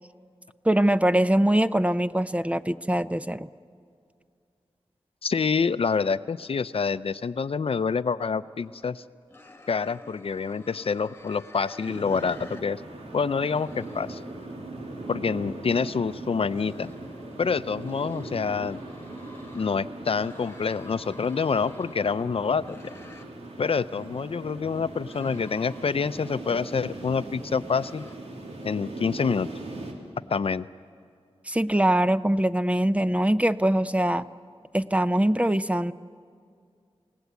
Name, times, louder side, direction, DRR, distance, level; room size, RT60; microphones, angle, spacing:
voice 1, 0.6-3.5 31.5-34.3 34.7-35.9, right 1 dB, 10° right, 13 dB, 0.5 m, -23 dB
voice 2, 5.2-9.0 9.7-12.8 13.1-14.2 15.1-16.9 17.4-18.8 19.5-22.9 23.6-28.0 28.6-29.5 30.3-30.6, left 5 dB, 60° left, 14 dB, 0.5 m, -27 dB
sound 1, 8.6-8.9 9.3-12.6 12.9-15.5 16.2-19.7 20.1-23.3 23.6-26.9 27.4-28.2, left 2 dB, 20° left, 1.5 m, -50 dB
sound 2, 11.8-29.9, right 2 dB, 85° right, 3.1 m, -40 dB
29.5 x 18.0 x 8.3 m, 2.3 s
wide cardioid pair, 95°, 11 cm